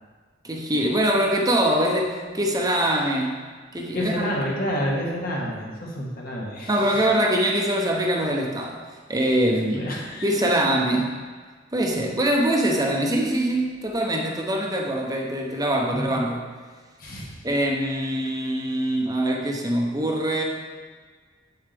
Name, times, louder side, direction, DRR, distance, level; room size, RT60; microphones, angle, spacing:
voice 1, 0.4-3.4 3.7-4.1 6.7-8.8 9.1-9.8 10.2-11.1 11.7-16.4 17.4-20.4, right 1 dB, 20° right, 0 dB, 0.9 m, -23 dB
voice 2, 2.6-3.1 3.9-7.1 9.7-10.3 13.4-13.5 15.9-16.2 17.0-17.3, equal, 50° left, -3 dB, 1.8 m, -29 dB
8.7 x 6.7 x 3.5 m, 1.5 s
head